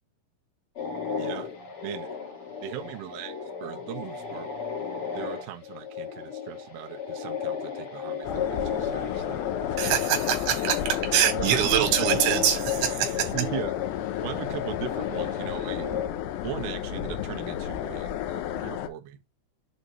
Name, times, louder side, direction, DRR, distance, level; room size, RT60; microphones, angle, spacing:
sound 1, 0.8-16.1, left 7 dB, 45° left, 1.8 m, -34 dB
voice 1, 1.2-1.5 1.8-2.1 2.6-4.5 5.1-9.4 10.0-10.2 11.3-12.4 13.3-13.8 14.2-15.9 16.4-19.2, right 12 dB, 90° right, 2.2 m, -38 dB
sound 2, 8.2-18.9, left 11 dB, 85° left, 2.5 m, -32 dB
voice 2, 9.8-13.3, right 10 dB, 70° right, 3.5 m, -24 dB
7.4 x 2.7 x 4.8 m
omnidirectional pair, 5.6 m